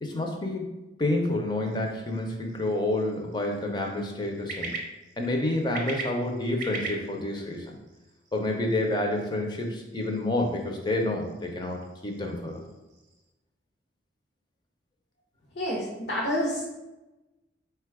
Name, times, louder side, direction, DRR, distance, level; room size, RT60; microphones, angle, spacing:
voice 1, 0.0-4.7 5.2-7.8 8.3-12.6, left 1 dB, 25° left, 2 dB, 0.5 m, -29 dB
sound 1, 1.6-13.3, right 3 dB, 45° right, 0.6 m, -43 dB
voice 2, 15.5-16.6, equal, 70° left, -4 dB, 0.7 m, -28 dB
4.1 x 2.2 x 4.6 m, 1.0 s
head